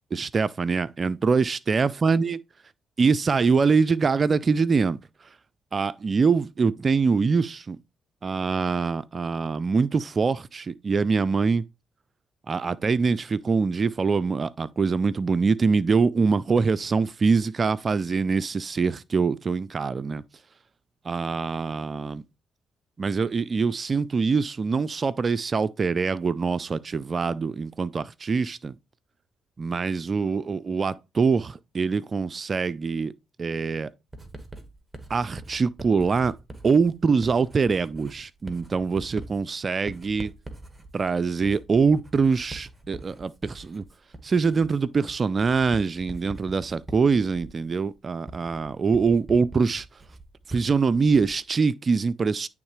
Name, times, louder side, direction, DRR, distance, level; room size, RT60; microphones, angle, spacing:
voice 1, 0.1-2.4 3.0-5.0 5.7-7.8 8.2-11.6 12.5-20.2 21.0-22.2 23.0-28.8 29.6-33.1 33.4-33.9 35.1-36.3 36.6-40.3 40.9-43.8 44.2-49.9 50.5-52.5, right 5 dB, 45° right, 0.4 m, -24 dB
Writing, 34.1-51.5, right 2 dB, 15° right, 1.7 m, -44 dB
9.7 x 3.6 x 3.1 m
supercardioid pair, 55°, 0 cm